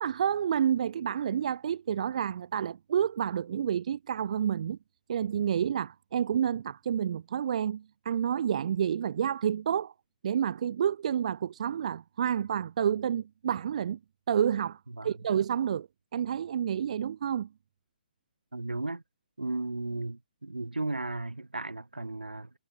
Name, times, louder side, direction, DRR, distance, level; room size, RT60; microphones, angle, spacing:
voice 1, 0.0-4.8 5.1-9.9 10.2-14.0 14.3-17.5, right 9 dB, 50° right, 0.5 m, -29 dB
voice 2, 18.5-19.0 19.4-22.5, right 2 dB, 80° right, 1.9 m, -35 dB
figure-of-eight pair, 130°, 5 cm